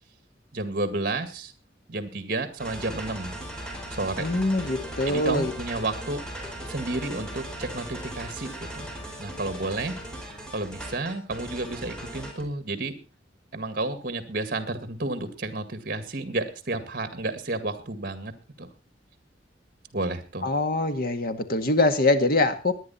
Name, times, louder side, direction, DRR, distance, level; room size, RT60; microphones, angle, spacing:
voice 1, 0.5-1.5 1.9-3.4 4.0-4.3 5.1-6.2 6.7-8.9 9.2-10.0 10.5-12.9 13.5-18.3 18.6-18.7 19.9-20.5, right 2 dB, 55° right, 11 dB, 2.0 m, -31 dB
sound 1, 2.6-12.4, right 1 dB, 5° left, 4.5 m, -38 dB
voice 2, 4.2-5.5 20.4-22.7, left 2 dB, 55° left, 9 dB, 1.9 m, -23 dB
20.0 x 10.5 x 4.3 m, 0.32 s
head